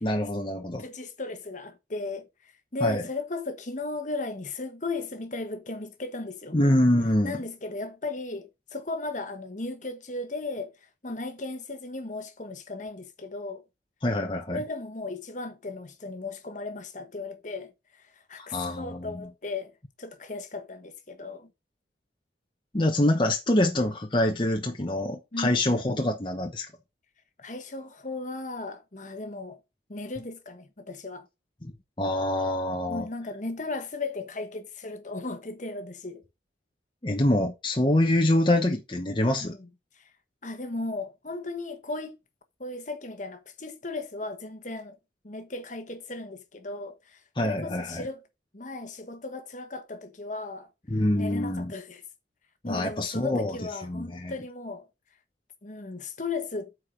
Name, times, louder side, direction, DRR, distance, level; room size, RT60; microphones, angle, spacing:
voice 1, 0.0-0.8 2.8-3.0 6.5-7.4 14.0-14.6 18.4-19.3 22.7-26.7 31.6-31.7 32.0-33.1 37.0-39.6 47.4-48.0 50.9-51.7 52.6-53.6 53.8-54.3, left 1 dB, 25° left, 1.0 m, -25 dB
voice 2, 0.8-6.6 7.2-13.6 14.5-21.5 25.3-25.6 27.4-29.6 29.9-31.3 32.9-36.2 39.4-39.7 39.9-40.1 40.4-42.2 42.6-45.0 45.2-48.2 48.5-50.7 51.1-52.0 52.6-54.9 55.6-56.7, left 3 dB, 45° left, 1.2 m, -36 dB
8.3 x 4.7 x 5.1 m
head